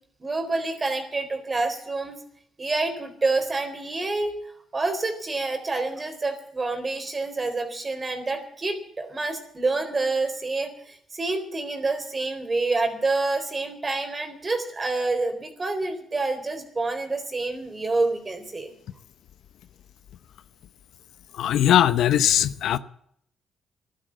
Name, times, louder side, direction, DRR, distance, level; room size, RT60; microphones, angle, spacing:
voice 1, 0.2-2.2 2.6-4.3 4.7-18.7, right 3 dB, 30° right, 3.9 m, -27 dB
voice 2, 21.4-22.8, left 11 dB, 75° left, 0.7 m, -20 dB
14.5 x 11.5 x 7.6 m
cardioid pair, 90°, 0 cm